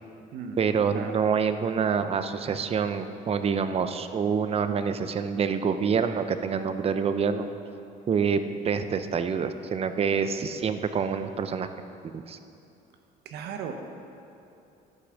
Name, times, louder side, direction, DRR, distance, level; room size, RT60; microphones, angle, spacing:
voice 1, 0.6-7.5 8.1-11.7 12.0-12.4, right 6 dB, 35° right, 10 dB, 0.6 m, -27 dB
voice 2, 13.2-13.7, right 7 dB, 80° right, 5 dB, 1.1 m, -36 dB
12.0 x 5.9 x 6.4 m, 2.8 s
cardioid pair, 110°, 17 cm